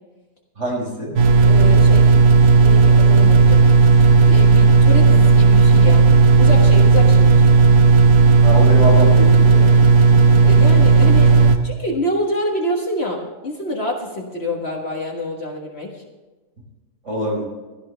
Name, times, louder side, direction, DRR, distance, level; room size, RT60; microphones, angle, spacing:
voice 1, 0.6-1.2 8.4-9.7 17.0-17.4, equal, 50° right, -3 dB, 5.4 m, -23 dB
sound 1, 1.2-11.6, right 4 dB, 65° right, 1.6 m, -12 dB
voice 2, 1.4-2.1 2.6-3.6 4.3-6.1 6.4-7.4 10.4-11.3 11.6-16.0, left 1 dB, 45° left, 1 dB, 1.7 m, -26 dB
15.5 x 13.5 x 3.4 m, 1.2 s
omnidirectional pair, 1.7 m